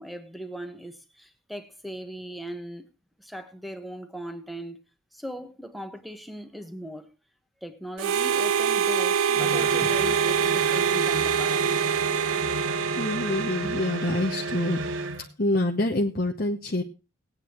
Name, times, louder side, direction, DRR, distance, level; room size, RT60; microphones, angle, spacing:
voice 1, 0.0-2.8 3.2-4.8 5.1-7.1 7.6-11.7, equal, ahead, 1.2 m, -39 dB
Harmonica, 8.0-14.4, right 7 dB, 85° right, 0.5 m, -25 dB
sound 1, 9.3-15.3, right 2 dB, 65° right, 1.1 m, -32 dB
voice 2, 13.0-14.8 15.4-16.8, left 1 dB, 45° left, 0.9 m, -26 dB
19.0 x 9.2 x 3.1 m
head